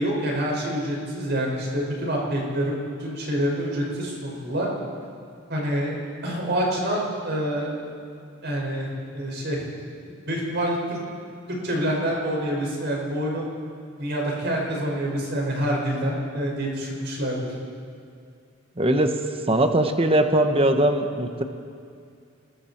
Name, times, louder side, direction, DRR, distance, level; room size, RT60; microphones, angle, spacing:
voice 1, 0.0-4.7 5.5-5.9 6.2-7.8 8.4-9.6 10.2-11.0 11.6-13.4 14.0-17.4, equal, 55° right, -2 dB, 6.0 m, -27 dB
voice 2, 18.8-19.1 19.5-21.4, right 1 dB, 25° right, 6 dB, 1.2 m, -20 dB
27.5 x 21.0 x 4.5 m, 2.3 s
head